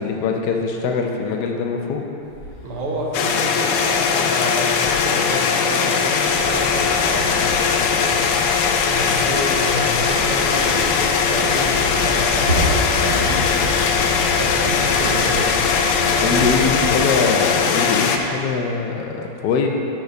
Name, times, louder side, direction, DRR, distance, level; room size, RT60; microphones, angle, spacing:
voice 1, 0.0-2.1 16.2-19.7, left 5 dB, 70° left, 2 dB, 1.0 m, -22 dB
sound 1, 2.2-17.7, equal, 50° right, 2.4 m, -33 dB
voice 2, 2.6-8.3 8.8-12.5 12.9-15.5 16.0-16.7, right 1 dB, 80° right, -2 dB, 2.0 m, -29 dB
sound 2, 3.1-18.2, left 6 dB, 85° left, 1.5 m, -19 dB
sound 3, 6.2-17.0, left 1 dB, 45° left, 1.5 m, -33 dB
9.2 x 4.6 x 5.3 m, 2.8 s
omnidirectional pair, 2.4 m